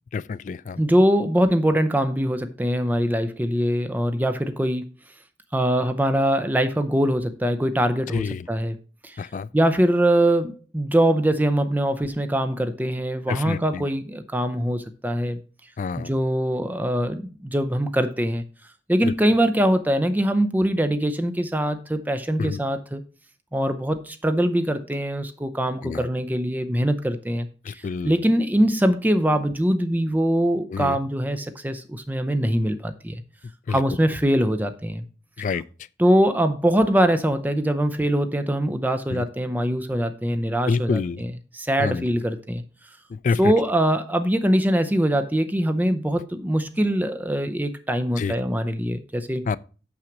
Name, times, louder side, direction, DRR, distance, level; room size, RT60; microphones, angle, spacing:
voice 1, 0.1-0.8 8.1-8.4 9.2-9.5 13.3-13.9 15.8-16.1 19.0-19.1 22.4-22.6 25.8-26.1 27.7-28.2 30.7-31.0 33.7-33.8 35.4-35.6 39.1-39.2 40.7-41.2 41.8-42.1 43.1-43.5 48.2-48.3 49.5-49.6, left 5 dB, 45° left, 0.3 m, -27 dB
voice 2, 0.8-4.8 5.5-8.8 9.0-9.2 9.5-15.4 16.0-18.4 18.9-23.0 23.5-33.2 33.7-35.0 36.0-42.6 43.4-49.4, right 1 dB, 10° right, 0.5 m, -23 dB
6.3 x 5.9 x 5.9 m
head